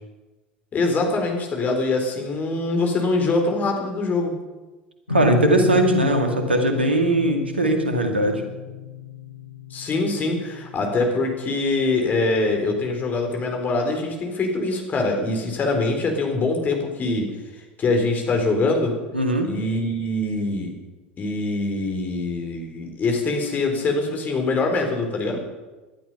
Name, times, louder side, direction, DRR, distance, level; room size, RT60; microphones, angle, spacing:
voice 1, 0.7-4.3 9.7-17.3 17.5-18.9 19.4-20.7 21.2-25.4, left 3 dB, 30° left, 3 dB, 3.9 m, -23 dB
sound 1, 5.1-12.3, left 4 dB, 85° left, 1.1 m, -32 dB
voice 2, 5.1-8.4 19.1-19.5, right 1 dB, 80° right, 4 dB, 2.2 m, -20 dB
19.0 x 12.0 x 5.7 m, 1.2 s
figure-of-eight pair, 75°, 6 cm